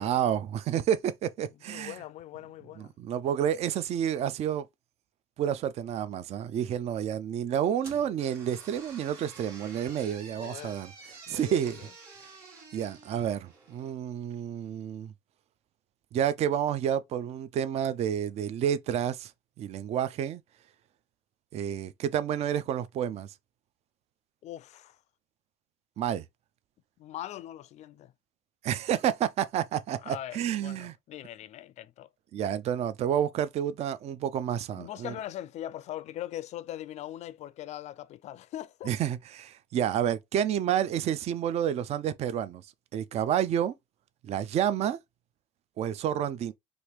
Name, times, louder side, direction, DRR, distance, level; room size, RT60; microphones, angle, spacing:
voice 1, 0.0-2.0 2.8-4.6 5.4-10.9 11.3-11.8 12.7-15.1 16.1-19.3 19.6-20.4 21.5-23.3 26.0-26.2 28.6-30.9 32.3-35.1 38.9-42.6 42.9-43.8 44.2-45.0 45.8-46.5, right 9 dB, 45° right, 0.4 m, -29 dB
voice 2, 1.7-2.9 10.4-10.8 11.3-11.9 24.4-25.0 27.0-28.1 30.0-32.1 34.7-38.9, left 13 dB, 50° left, 0.4 m, -41 dB
sound 1, 7.8-14.0, right 4 dB, 75° right, 1.5 m, -50 dB
3.0 x 2.6 x 3.1 m
supercardioid pair, 100°, 15 cm